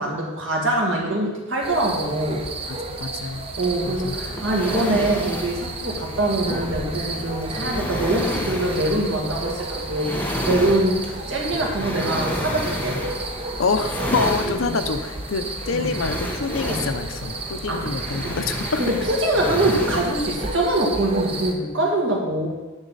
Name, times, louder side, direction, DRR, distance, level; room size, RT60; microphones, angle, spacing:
voice 1, 0.0-2.4 3.6-13.0 14.4-14.8 15.7-15.9 16.6-16.8 17.7-17.8 18.2-18.3 18.8-22.5, right 1 dB, 70° right, -2 dB, 1.9 m, -24 dB
sound 1, 1.6-21.5, right 2 dB, 30° right, 0.8 m, -33 dB
voice 2, 2.7-3.5 3.8-4.2 13.6-18.8, left 4 dB, 75° left, 8 dB, 0.6 m, -26 dB
sound 2, 3.6-20.6, equal, 10° left, 0.9 m, -31 dB
9.7 x 6.3 x 4.0 m, 1.2 s
head